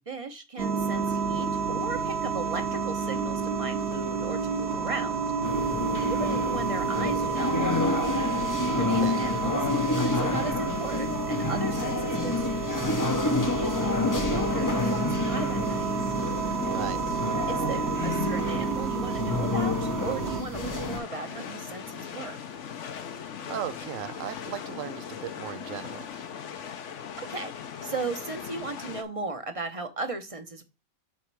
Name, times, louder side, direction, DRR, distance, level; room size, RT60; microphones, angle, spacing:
voice 1, 0.0-8.1 8.8-9.7 10.0-12.5 13.4-15.9 17.5-22.4 27.2-27.5 27.8-30.6, right 3 dB, 30° right, 0.9 m, -36 dB
sound 1, 0.6-20.4, right 5 dB, 50° right, 1.4 m, -30 dB
sound 2, 5.4-21.0, left 3 dB, 20° left, 0.6 m, -29 dB
voice 2, 16.7-17.1 23.5-26.1, right 10 dB, 70° right, 0.9 m, -37 dB
sound 3, 20.5-29.0, left 7 dB, 60° left, 1.0 m, -39 dB
7.6 x 3.2 x 4.7 m
omnidirectional pair, 1.5 m